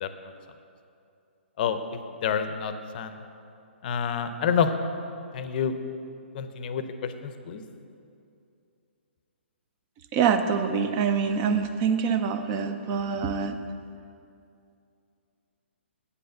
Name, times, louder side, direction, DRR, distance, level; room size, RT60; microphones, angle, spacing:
voice 1, 2.2-3.2 3.8-4.7 5.3-5.7 6.3-7.6, left 7 dB, 45° left, 9 dB, 0.6 m, -28 dB
voice 2, 10.1-13.6, right 6 dB, 30° right, 8 dB, 0.5 m, -25 dB
8.2 x 5.5 x 6.5 m, 2.6 s
hypercardioid pair, 135°, 7 cm